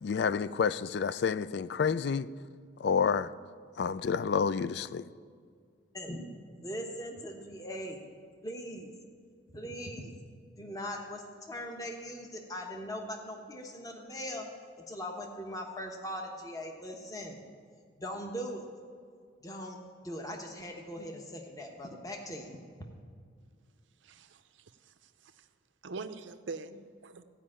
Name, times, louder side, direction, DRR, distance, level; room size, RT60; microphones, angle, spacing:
voice 1, 0.0-2.3 2.8-3.3 3.8-5.0, left 6 dB, 55° left, 0.3 m, -29 dB
voice 2, 5.9-6.3 6.5-8.0 8.4-8.9 9.5-10.1 10.6-14.5 14.8-17.4 18.0-18.6 19.4-19.8 20.0-22.6, equal, 20° left, 1.0 m, -40 dB
voice 3, 24.0-25.5 25.8-26.8, right 4 dB, 70° right, 0.6 m, -44 dB
14.5 x 5.3 x 8.7 m
head